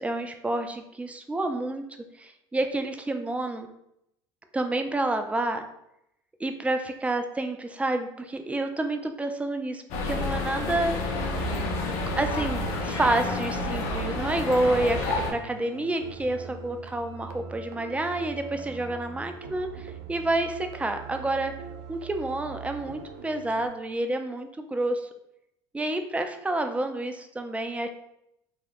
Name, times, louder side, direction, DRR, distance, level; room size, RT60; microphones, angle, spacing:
voice 1, 0.0-1.8 2.2-3.7 4.5-5.6 6.4-11.3 12.2-21.5 21.9-25.1 25.7-27.9, right 2 dB, 10° right, 6 dB, 0.3 m, -29 dB
sound 1, 9.9-15.3, left 2 dB, 65° left, 0.6 m, -29 dB
sound 2, 12.6-23.7, right 6 dB, 75° right, 0.4 m, -43 dB
3.4 x 2.3 x 2.4 m, 0.81 s
hypercardioid pair, 80°, 13 cm